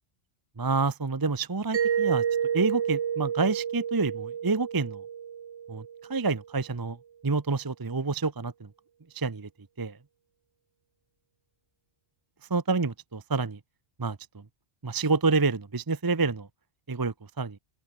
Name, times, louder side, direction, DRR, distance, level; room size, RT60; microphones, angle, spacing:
voice 1, 0.6-2.2 2.5-5.0 5.7-5.8 6.1-7.0 7.2-8.7 9.1-9.5 9.8-10.0 12.5-13.6 14.0-14.2 14.8-16.5 16.9-17.6, right 4 dB, 25° right, 0.7 m, -28 dB
Mallet percussion, 1.7-6.3, right 8 dB, 80° right, 1.3 m, -30 dB
open air
omnidirectional pair, 1.2 m